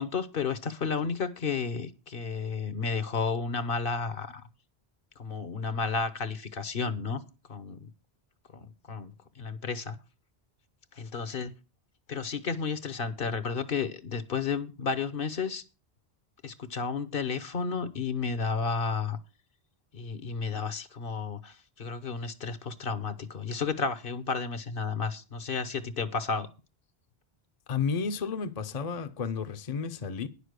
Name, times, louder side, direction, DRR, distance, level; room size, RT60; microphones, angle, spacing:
voice 1, 0.0-4.4 5.2-7.2 7.5-7.9 8.5-10.0 10.9-11.5 12.1-15.6 16.4-19.2 19.9-26.5, left 5 dB, 60° left, 1.1 m, -32 dB
voice 2, 27.7-30.3, left 5 dB, 45° left, 0.7 m, -32 dB
10.0 x 6.8 x 6.4 m
omnidirectional pair, 1.0 m